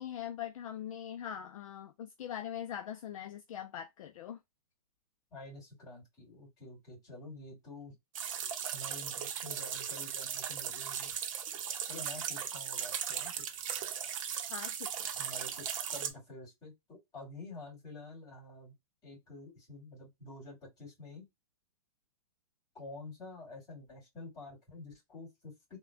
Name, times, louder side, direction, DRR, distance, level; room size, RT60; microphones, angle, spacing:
voice 1, 0.0-4.4 14.5-15.1, left 10 dB, 60° left, 0.5 m, -42 dB
voice 2, 5.3-8.0 8.7-11.1 11.9-13.6 15.1-18.7 19.0-21.3 22.7-25.8, left 2 dB, 20° left, 2.3 m, -49 dB
sound 1, 8.2-16.1, right 8 dB, 55° right, 0.7 m, -37 dB
3.6 x 2.2 x 2.4 m
hypercardioid pair, 145°, 20 cm